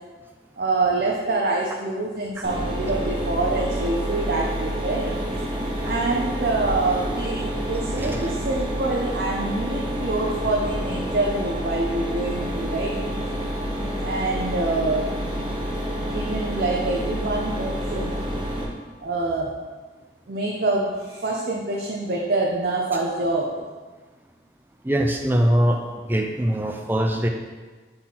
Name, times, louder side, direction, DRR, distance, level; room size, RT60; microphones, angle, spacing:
voice 1, 0.6-5.1 5.8-13.0 14.0-15.1 16.1-18.1 19.0-19.5 20.3-23.5, right 2 dB, 60° right, -2 dB, 0.6 m, -26 dB
Mechanisms, 2.4-18.6, equal, 25° right, 0.8 m, -28 dB
voice 2, 7.9-8.4 24.8-27.3, equal, 10° right, 3 dB, 0.4 m, -23 dB
5.9 x 3.8 x 4.2 m, 1.3 s
head